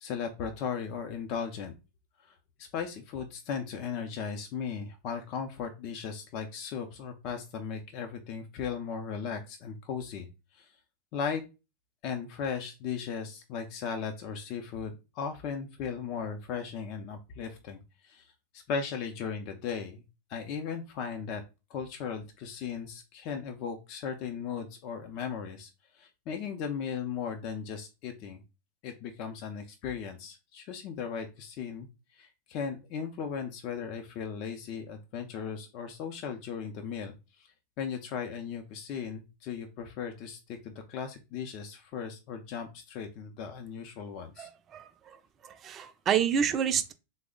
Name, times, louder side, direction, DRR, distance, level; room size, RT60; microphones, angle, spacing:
voice 1, 0.0-1.7 2.6-10.3 10.5-10.7 11.1-11.4 12.0-18.3 18.5-20.0 20.3-21.4 21.7-28.4 28.8-31.9 32.2-37.5 37.8-44.5, left 6 dB, 50° left, 0.5 m, -37 dB
voice 2, 44.4-45.2 45.4-46.9, right 8 dB, 30° right, 0.4 m, -29 dB
3.3 x 2.0 x 3.7 m
supercardioid pair, 130°, 0 cm